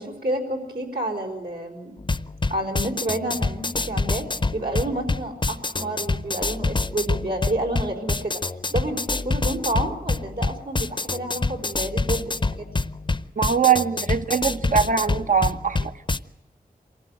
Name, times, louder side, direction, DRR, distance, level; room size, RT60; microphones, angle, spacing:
voice 1, 0.0-1.9 2.5-4.3 4.5-8.4 8.7-12.2 12.5-12.8, right 1 dB, 80° right, 0 dB, 4.4 m, -29 dB
sound 1, 2.0-16.2, left 3 dB, 30° left, 0.6 m, -26 dB
voice 2, 13.4-15.9, right 7 dB, 55° right, 10 dB, 0.8 m, -22 dB
23.5 x 15.5 x 9.3 m, 1.1 s
wide cardioid pair, 50°, 16 cm